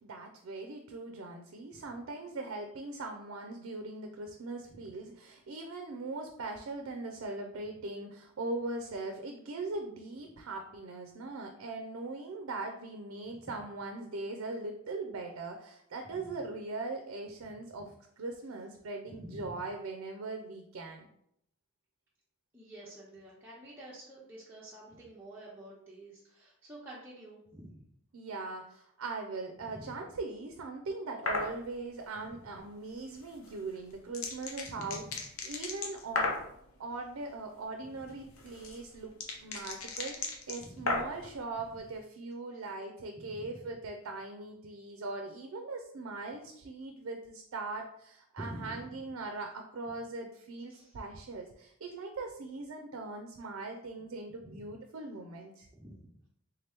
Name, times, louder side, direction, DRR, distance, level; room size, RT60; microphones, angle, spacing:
voice 1, 0.0-21.0 28.1-35.0 35.5-36.3 36.8-39.1 39.4-55.7, right 3 dB, 80° right, 4 dB, 0.4 m, -40 dB
voice 2, 19.1-19.6 22.5-27.8 29.6-29.9 34.7-35.0 38.2-38.3 40.6-40.9 43.2-43.4 48.4-48.8 50.7-51.0 54.5-54.7 55.7-56.0, right 1 dB, 10° right, -8 dB, 0.6 m, -48 dB
sound 1, 31.3-31.5 33.4-36.5 38.1-41.3, left 3 dB, 80° left, 0.7 m, -35 dB
3.5 x 2.8 x 3.4 m, 0.72 s
head